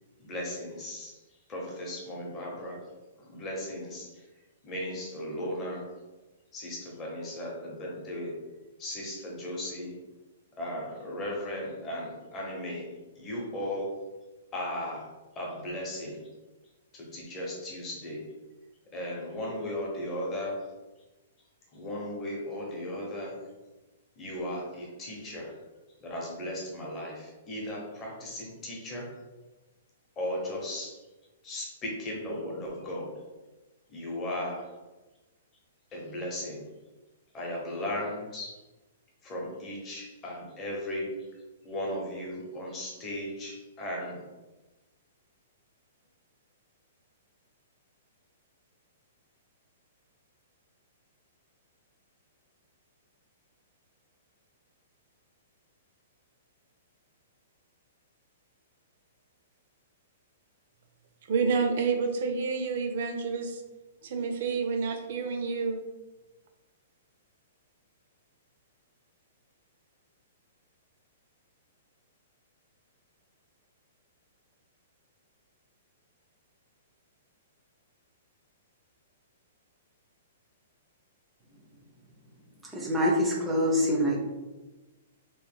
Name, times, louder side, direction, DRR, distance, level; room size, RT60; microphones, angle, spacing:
voice 1, 0.2-1.1 1.5-2.8 3.3-4.1 4.6-5.9 6.5-8.4 8.8-9.9 10.6-12.9 13.2-14.1 14.5-15.1 15.4-16.2 16.9-18.3 18.9-20.6 21.7-23.4 24.2-25.5 26.0-29.1 30.2-31.0 31.4-33.2 33.9-34.7 35.9-36.7 37.3-38.6 39.2-41.2 41.6-44.2, left 1 dB, 20° left, 0.9 m, -36 dB
voice 2, 61.3-63.6 64.0-65.8, right 5 dB, 55° right, 0.6 m, -29 dB
voice 3, 82.6-84.2, equal, 5° right, 0.6 m, -25 dB
3.1 x 3.0 x 3.5 m
hypercardioid pair, 165°, 0 cm